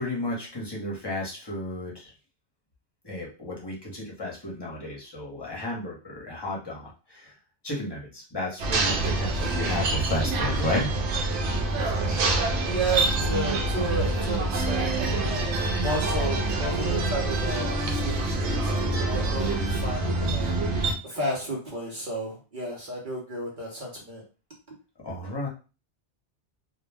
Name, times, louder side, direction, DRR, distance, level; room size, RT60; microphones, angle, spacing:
voice 1, 0.0-2.1 3.0-7.3 7.6-10.9 25.0-25.5, left 1 dB, 25° left, -3 dB, 0.9 m, -33 dB
sound 1, 8.6-20.9, right 2 dB, 80° right, 0.9 m, -26 dB
voice 2, 12.7-17.8 18.0-20.5 21.0-24.2, right 1 dB, 50° right, -2 dB, 0.8 m, -32 dB
2.4 x 2.1 x 3.3 m, 0.33 s
omnidirectional pair, 1.2 m